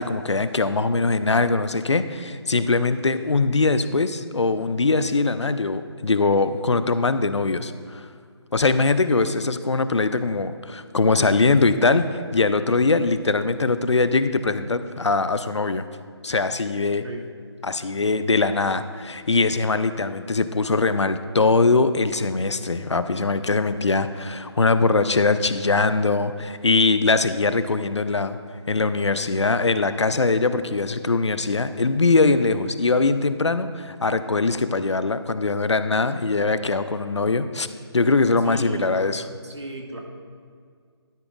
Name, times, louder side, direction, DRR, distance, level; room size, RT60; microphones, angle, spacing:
voice 1, 0.0-8.1 8.5-15.8 16.2-17.0 17.6-28.4 28.7-37.7 37.9-39.3, left 3 dB, 80° left, 12 dB, 0.5 m, -22 dB
voice 2, 16.9-17.2 38.4-39.1 39.4-40.0, right 2 dB, 75° right, 1 dB, 1.6 m, -35 dB
12.0 x 9.9 x 2.5 m, 2.1 s
figure-of-eight pair, 150°, 15 cm